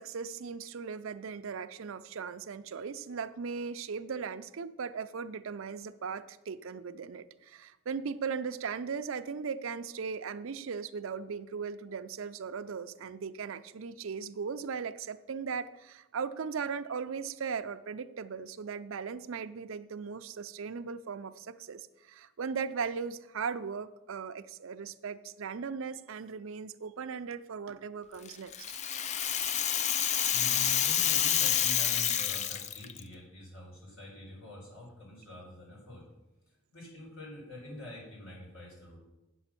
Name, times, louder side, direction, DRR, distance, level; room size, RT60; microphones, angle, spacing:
voice 1, 0.0-28.5, right 5 dB, 70° right, 11 dB, 0.5 m, -38 dB
Rattle (instrument), 28.3-33.0, left 9 dB, 35° left, 0.3 m, -28 dB
voice 2, 30.3-36.0 36.5-39.0, left 1 dB, 70° left, -3 dB, 4.3 m, -46 dB
8.7 x 7.1 x 5.9 m, 1.0 s
head